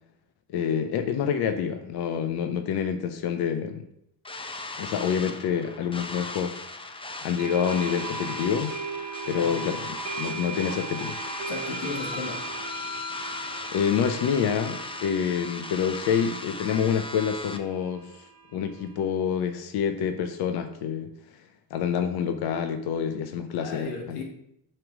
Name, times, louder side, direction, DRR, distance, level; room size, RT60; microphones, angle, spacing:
voice 1, 0.5-3.8 4.8-6.6 7.2-8.7 9.3-9.9 10.2-11.2 13.7-21.1 21.7-24.2, left 7 dB, 55° left, 8 dB, 0.6 m, -27 dB
sound 1, 4.2-17.6, left 3 dB, 10° left, 0.6 m, -37 dB
sound 2, 7.4-19.0, right 5 dB, 70° right, 1.7 m, -39 dB
voice 2, 11.5-12.4 23.6-24.2, left 4 dB, 85° left, 1 dB, 1.2 m, -35 dB
7.6 x 3.1 x 4.9 m, 0.76 s
hypercardioid pair, 55°, 46 cm